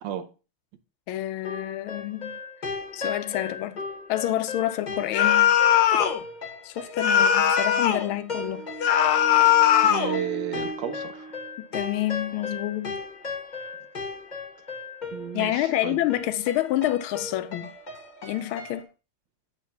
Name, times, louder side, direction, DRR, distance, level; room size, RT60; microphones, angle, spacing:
voice 1, 1.1-2.4 2.9-3.8 4.1-5.5 5.9-6.1 6.6-8.7 11.7-13.0 15.3-17.7 18.2-18.9, left 14 dB, 85° left, 1.4 m, -28 dB
sound 1, 1.4-18.8, left 3 dB, 35° left, 0.7 m, -36 dB
sound 2, 5.1-6.2 7.0-8.1 8.8-10.2, left 10 dB, 65° left, 1.2 m, -19 dB
voice 2, 9.8-11.3 15.1-16.1, right 9 dB, 65° right, 1.4 m, -33 dB
8.3 x 3.2 x 5.7 m
omnidirectional pair, 2.3 m